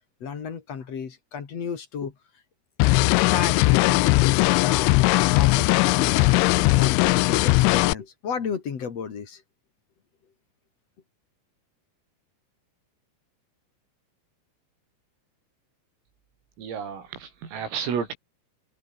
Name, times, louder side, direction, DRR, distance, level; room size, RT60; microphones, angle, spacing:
voice 1, 0.2-2.1 3.0-9.4, left 6 dB, 40° left, 2.7 m, -33 dB
sound 1, 2.8-7.9, left 22 dB, 80° left, 2.9 m, -19 dB
voice 2, 16.6-18.1, right 7 dB, 85° right, 8.0 m, -31 dB
open air
omnidirectional pair, 5.9 m